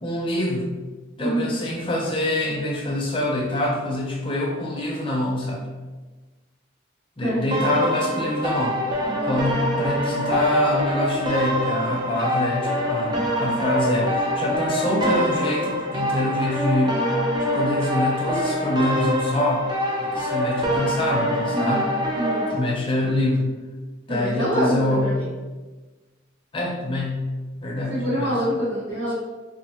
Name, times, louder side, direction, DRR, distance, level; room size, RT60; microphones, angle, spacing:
voice 1, 0.0-0.7 1.2-5.6 7.2-8.8 9.2-17.0 17.4-19.6 20.0-21.9 22.5-23.5 24.1-25.1 26.5-27.3 27.6-28.3, left 1 dB, 25° left, -2 dB, 0.6 m, -25 dB
voice 2, 1.2-1.5 7.2-7.8 9.0-9.4 21.5-21.9 22.2-22.4 24.1-25.3 27.9-29.1, equal, 90° right, -13 dB, 1.5 m, -26 dB
sound 1, 7.5-22.5, equal, 20° right, 0.4 m, -25 dB
3.5 x 2.6 x 2.8 m, 1.3 s
head